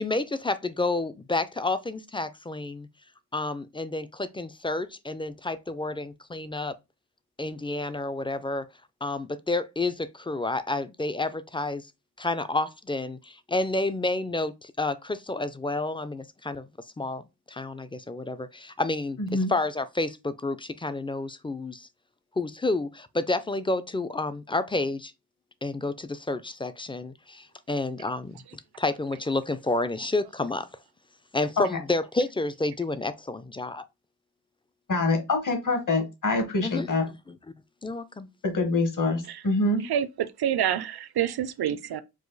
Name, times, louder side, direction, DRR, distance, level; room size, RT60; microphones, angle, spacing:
voice 1, 0.0-2.9 3.3-6.7 7.4-8.7 9.0-11.9 12.2-16.7 17.0-21.9 22.4-25.1 25.6-28.4 28.8-30.7 31.3-33.8 36.6-37.4 37.8-38.3, left 2 dB, 15° left, 0.3 m, -30 dB
voice 2, 19.2-19.5 34.9-37.0 38.4-39.8, left 2 dB, 55° left, 1.4 m, -25 dB
voice 3, 39.8-42.0, right 10 dB, 80° right, 0.5 m, -27 dB
4.8 x 2.3 x 3.9 m
wide cardioid pair, 105°, 38 cm